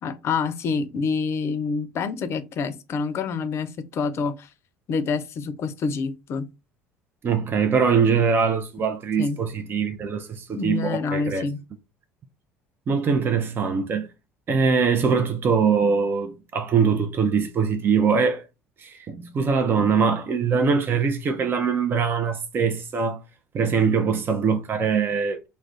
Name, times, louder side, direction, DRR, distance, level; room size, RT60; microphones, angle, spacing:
voice 1, 0.0-4.5 4.9-6.5 9.2-9.4 10.6-11.6, left 5 dB, 50° left, 0.5 m, -27 dB
voice 2, 7.2-11.4 12.9-14.1 14.5-18.4 18.8-23.2 23.5-25.5, right 5 dB, 40° right, 0.5 m, -22 dB
2.4 x 2.2 x 3.9 m
hypercardioid pair, 65°, 6 cm